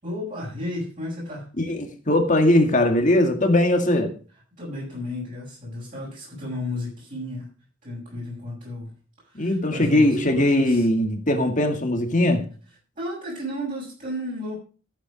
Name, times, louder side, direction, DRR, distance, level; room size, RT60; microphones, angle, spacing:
voice 1, 0.0-1.5 4.6-7.5 7.8-8.9 9.2-10.9 13.0-14.6, left 1 dB, 40° right, 7.0 m, -33 dB
voice 2, 1.6-4.1 9.4-12.5, left 1 dB, 35° left, 2.1 m, -20 dB
14.0 x 8.1 x 5.2 m
head